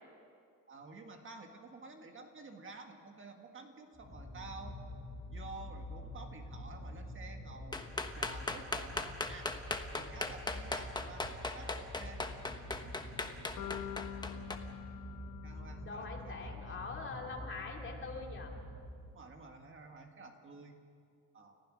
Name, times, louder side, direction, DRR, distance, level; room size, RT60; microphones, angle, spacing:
voice 1, 0.7-4.7 5.3-9.5 9.9-12.2 12.8-12.9 15.4-16.8 19.1-20.7 21.3-21.6, right 3 dB, 40° right, 4 dB, 1.7 m, -51 dB
sound 1, 3.9-19.3, left 1 dB, 10° right, 6.8 m, -47 dB
sound 2, 7.7-14.6, left 3 dB, 15° left, 1.1 m, -37 dB
sound 3, 13.6-17.7, left 11 dB, 75° left, 1.4 m, -47 dB
voice 2, 15.8-18.5, left 3 dB, 40° left, 1 dB, 2.8 m, -43 dB
30.0 x 15.0 x 6.2 m, 2.2 s
wide cardioid pair, 155°, 32 cm